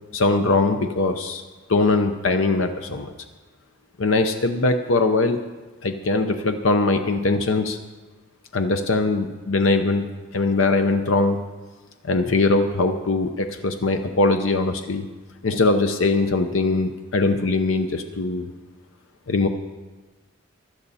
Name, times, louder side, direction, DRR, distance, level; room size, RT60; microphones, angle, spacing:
voice 1, 0.1-1.4 1.7-3.1 4.0-5.4 5.8-7.8 8.5-10.1 10.3-11.4 12.0-15.1 15.4-18.5 19.3-19.5, left 3 dB, 75° left, 6 dB, 0.7 m, -21 dB
16.0 x 11.5 x 4.2 m, 1.3 s
head